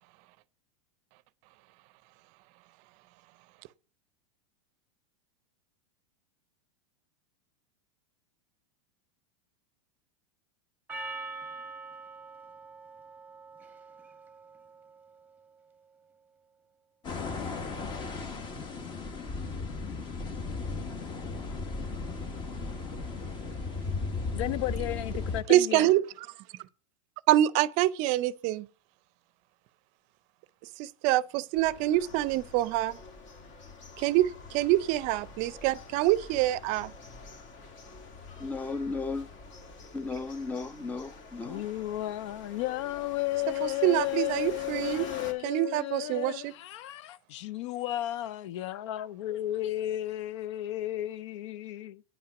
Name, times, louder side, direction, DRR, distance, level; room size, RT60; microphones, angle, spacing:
Percussion, 10.9-15.5, right 3 dB, 10° right, 1.1 m, -44 dB
sound 1, 17.0-25.4, left 3 dB, 30° left, 1.3 m, -35 dB
voice 1, 24.3-25.8 41.5-52.0, left 15 dB, 65° left, 0.5 m, -33 dB
voice 2, 25.5-26.3 27.3-28.7 30.8-33.0 34.0-36.9 43.6-45.1 45.4-46.5, right 15 dB, 50° right, 0.5 m, -26 dB
sound 2, 31.5-45.3, left 3 dB, 45° left, 2.2 m, -47 dB
voice 3, 38.4-39.3 39.9-41.6, left 3 dB, 10° left, 0.5 m, -35 dB
9.5 x 5.7 x 5.8 m
hypercardioid pair, 115°, 16 cm